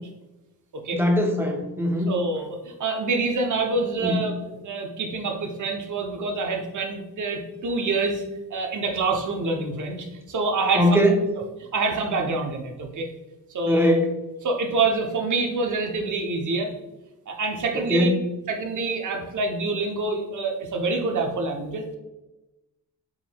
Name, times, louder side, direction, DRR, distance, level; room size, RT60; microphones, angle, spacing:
voice 1, 0.9-2.2 4.0-4.2 10.8-11.2 13.7-14.1 17.9-18.2, equal, 5° right, 2 dB, 0.5 m, -21 dB
voice 2, 2.1-8.2 8.5-11.0 11.6-13.1 13.5-14.0 14.4-16.7 17.3-18.1 18.5-22.0, right 3 dB, 50° right, 3 dB, 0.7 m, -26 dB
4.6 x 3.6 x 2.2 m, 1.0 s
wide cardioid pair, 115°, 38 cm